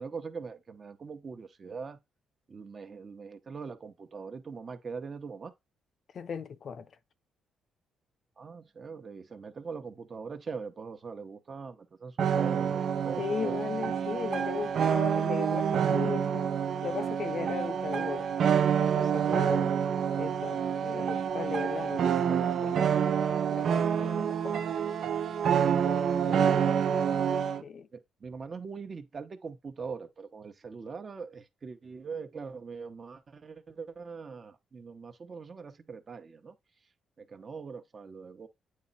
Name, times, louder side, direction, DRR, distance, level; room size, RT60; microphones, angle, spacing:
voice 1, 0.0-2.0 2.5-5.5 8.4-13.6 19.1-19.7 27.6-36.5 37.2-38.5, right 5 dB, 40° right, 1.0 m, -42 dB
voice 2, 6.1-6.9 13.2-16.5 16.8-18.3 18.8-19.7 20.2-24.6 25.6-26.7 27.6-27.9, left 6 dB, 55° left, 0.6 m, -37 dB
sound 1, 12.2-27.6, right 8 dB, 65° right, 0.6 m, -27 dB
8.6 x 3.1 x 4.1 m
cardioid pair, 90°, 0 cm